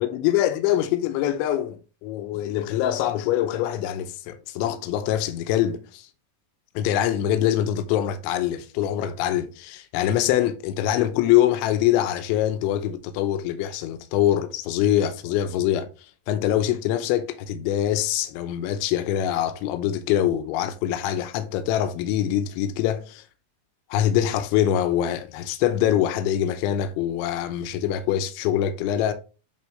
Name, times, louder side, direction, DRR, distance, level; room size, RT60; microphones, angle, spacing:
voice 1, 0.0-6.1 6.8-23.3 23.9-29.1, left 11 dB, 85° left, 3.1 m, -24 dB
10.5 x 3.8 x 3.2 m
omnidirectional pair, 5.4 m